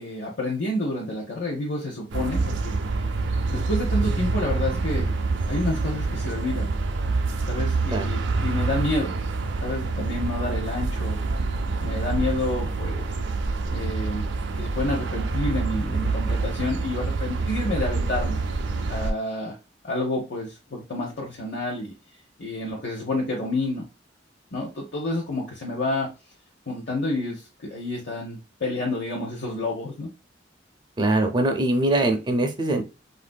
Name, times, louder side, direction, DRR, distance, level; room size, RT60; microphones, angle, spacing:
voice 1, 0.0-2.8 3.5-5.1 5.5-6.7 7.5-9.1 9.6-11.2 11.8-13.1 13.7-14.3 14.5-18.4 18.9-19.6 19.8-21.9 22.4-23.9 24.5-26.1 26.7-30.1, left 2 dB, 65° left, -2 dB, 0.7 m, -29 dB
sound 1, 2.1-19.1, right 3 dB, 75° right, 0.4 m, -26 dB
voice 2, 31.0-32.8, right 1 dB, 25° right, 5 dB, 0.5 m, -22 dB
3.4 x 2.5 x 2.2 m, 0.29 s
head